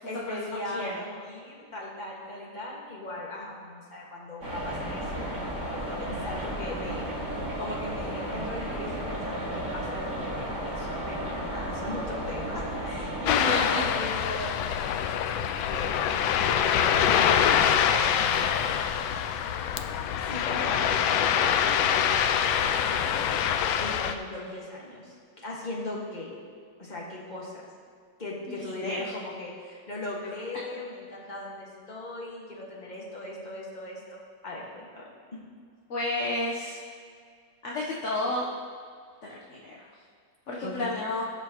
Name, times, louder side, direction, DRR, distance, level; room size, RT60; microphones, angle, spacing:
voice 1, 0.0-5.3 5.6-15.1 15.7-15.9 16.4-18.5 20.2-20.9 21.3-23.1 23.8-26.3 26.8-27.6 28.2-35.0 35.3-35.4 40.6-40.8, left 2 dB, 25° left, -4 dB, 1.7 m, -38 dB
sound 1, 4.4-13.3, right 1 dB, 45° right, 2.7 m, -33 dB
Ocean, 13.3-24.1, left 8 dB, 80° left, 1.3 m, -25 dB
voice 2, 13.3-13.8 28.5-29.0 35.9-36.8 37.6-38.4 39.2-39.9 40.5-41.2, left 2 dB, 45° left, -4 dB, 1.1 m, -31 dB
18.0 x 6.1 x 3.0 m, 2.2 s
omnidirectional pair, 2.3 m